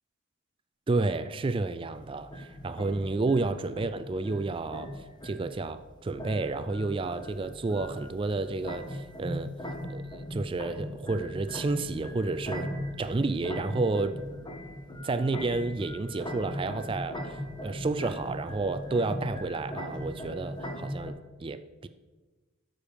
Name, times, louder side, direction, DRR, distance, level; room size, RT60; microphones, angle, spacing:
voice 1, 0.9-4.9 5.2-9.5 9.9-12.7 13.0-14.2 15.0-21.9, right 3 dB, 25° right, 11 dB, 0.3 m, -31 dB
sound 1, 1.9-21.1, equal, 20° left, 1.1 m, -39 dB
13.0 x 5.2 x 6.7 m, 1.3 s
head